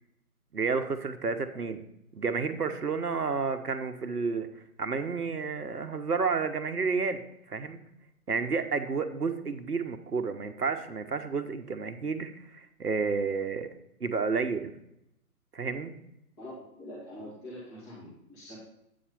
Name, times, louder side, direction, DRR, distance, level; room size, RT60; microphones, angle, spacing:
voice 1, 0.5-1.8 2.1-7.8 8.3-13.7 14.0-14.7 15.5-15.9, right 5 dB, 75° right, 9 dB, 1.0 m, -31 dB
voice 2, 16.4-18.6, left 1 dB, 15° left, -7 dB, 2.0 m, -44 dB
8.6 x 4.3 x 5.3 m, 0.81 s
figure-of-eight pair, 145°, 46 cm